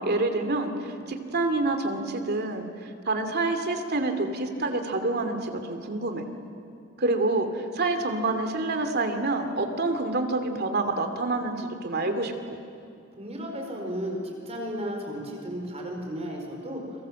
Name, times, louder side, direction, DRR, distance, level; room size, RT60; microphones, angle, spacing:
voice 1, 0.0-6.3 7.0-12.6, right 2 dB, 50° right, 6 dB, 2.7 m, -27 dB
voice 2, 13.2-16.8, equal, 30° right, 1 dB, 4.7 m, -34 dB
29.5 x 24.0 x 7.7 m, 2.5 s
head